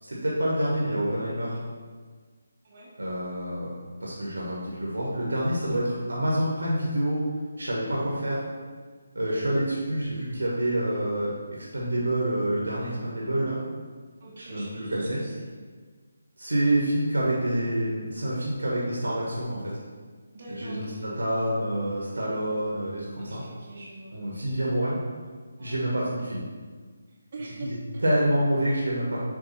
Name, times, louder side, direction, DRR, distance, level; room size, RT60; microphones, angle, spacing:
voice 1, 0.0-1.6 3.0-3.7 4.0-7.2 7.6-8.4 9.1-13.6 14.4-15.2 16.4-19.7 20.5-23.4 24.1-25.0 25.6-26.4 27.6-27.7 28.0-29.2, right 1 dB, 75° right, -5 dB, 1.4 m, -27 dB
voice 2, 14.2-15.4 20.3-21.0 23.2-24.6 25.6-25.8 27.3-28.0, right 1 dB, 40° right, -6 dB, 1.1 m, -43 dB
7.3 x 3.3 x 4.2 m, 1.5 s
figure-of-eight pair, 150°, 0 cm